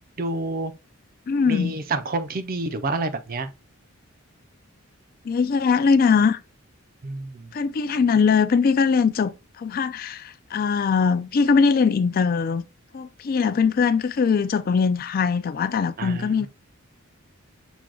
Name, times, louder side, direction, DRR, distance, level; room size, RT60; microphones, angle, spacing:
voice 1, 0.2-0.8 1.5-3.5 7.0-7.5 16.0-16.5, right 2 dB, 45° right, 0.5 m, -29 dB
voice 2, 1.3-1.8 5.2-6.4 7.5-12.6 12.9-16.5, left 5 dB, 45° left, 0.3 m, -21 dB
6.1 x 2.2 x 3.7 m
head